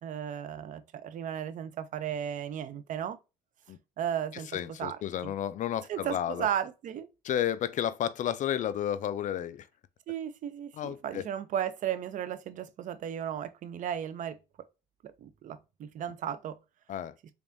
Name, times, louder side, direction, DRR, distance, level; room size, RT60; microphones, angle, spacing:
voice 1, 0.0-3.2 4.0-4.5 4.8-5.3 5.9-7.1 10.1-14.4 15.0-16.6, right 9 dB, 50° right, 0.5 m, -35 dB
voice 2, 4.3-6.5 7.2-9.7 10.8-11.2 16.9-17.1, left 10 dB, 50° left, 0.4 m, -32 dB
3.5 x 3.4 x 2.6 m
cardioid pair, 110°, 17 cm